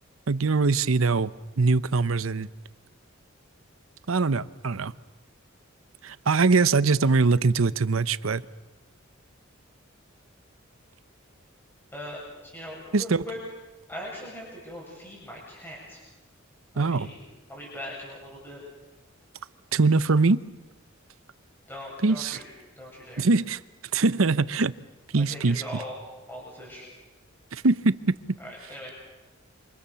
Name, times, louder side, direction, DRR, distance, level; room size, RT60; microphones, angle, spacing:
voice 1, 0.3-2.5 4.1-4.9 6.0-8.4 12.9-13.3 16.8-17.1 19.7-20.4 22.0-22.4 23.2-23.6 23.9-24.7 25.1-25.8 27.5-28.1, right 3 dB, 85° right, 16 dB, 0.8 m, -22 dB
voice 2, 11.9-13.4 13.9-16.0 16.7-17.2 17.5-18.6 21.7-22.4 22.8-23.2 25.1-26.0 26.3-26.9 28.4-28.9, left 1 dB, 10° left, -4 dB, 7.7 m, -40 dB
28.5 x 26.5 x 7.0 m, 1.1 s
head